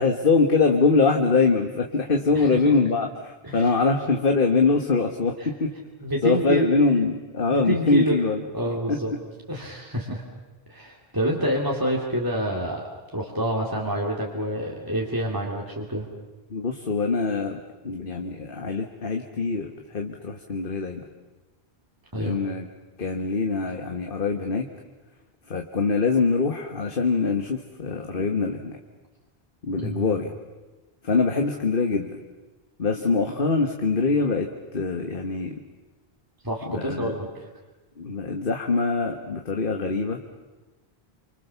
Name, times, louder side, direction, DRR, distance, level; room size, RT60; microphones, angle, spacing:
voice 1, 0.0-5.7 6.2-8.4 8.9-9.0 16.5-21.1 22.1-22.7 23.0-24.7 25.5-28.8 29.6-30.4 31.0-32.2 32.8-35.6 36.7-37.1 38.0-40.2, left 4 dB, 60° left, 3 dB, 1.7 m, -23 dB
voice 2, 2.3-2.7 3.4-3.6 6.0-6.7 7.5-9.1 9.5-10.2 10.7-12.8 13.1-16.1 22.1-22.4 29.8-30.1 36.4-37.4, equal, 20° right, -1 dB, 2.7 m, -27 dB
28.5 x 26.0 x 7.0 m, 1.2 s
omnidirectional pair, 1.0 m